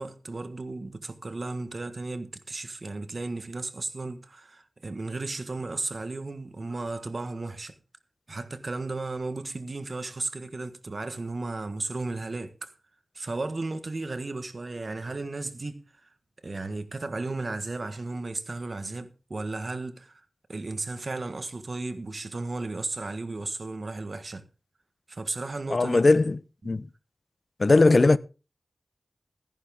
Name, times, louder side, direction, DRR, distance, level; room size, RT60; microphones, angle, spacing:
voice 1, 0.0-7.7 8.3-12.7 13.1-16.1 16.4-20.2 20.5-24.4 25.1-26.1 26.6-26.7, right 3 dB, 55° right, 1.4 m, -34 dB
voice 2, 25.7-26.4 26.6-26.9 27.6-28.2, left 3 dB, 55° left, 0.6 m, -19 dB
14.5 x 11.0 x 3.6 m
cardioid pair, 50°, 0 cm